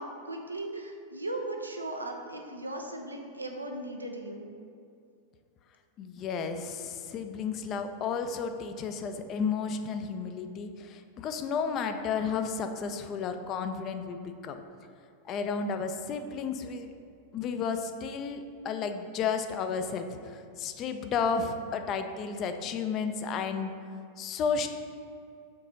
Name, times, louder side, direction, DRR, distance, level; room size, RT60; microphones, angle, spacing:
voice 1, 0.0-4.5, right 2 dB, 80° right, 3 dB, 0.6 m, -37 dB
voice 2, 6.0-14.6 15.3-16.9 17.3-23.7 24.2-24.7, left 5 dB, 35° left, 8 dB, 0.4 m, -32 dB
4.5 x 4.0 x 5.4 m, 2.4 s
figure-of-eight pair, 90°, 0 cm